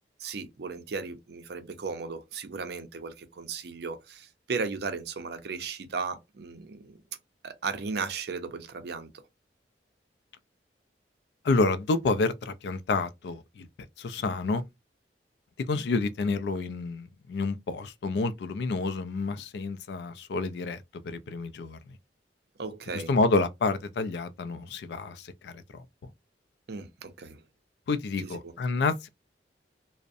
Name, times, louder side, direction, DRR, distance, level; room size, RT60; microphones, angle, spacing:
voice 1, 0.2-7.0 7.4-9.1 22.6-23.1 26.7-27.4, right 4 dB, 60° right, 0.5 m, -36 dB
voice 2, 11.4-13.7 14.0-14.6 15.6-22.0 22.9-26.1 27.9-29.1, left 3 dB, 65° left, 0.3 m, -29 dB
2.5 x 2.0 x 2.4 m
head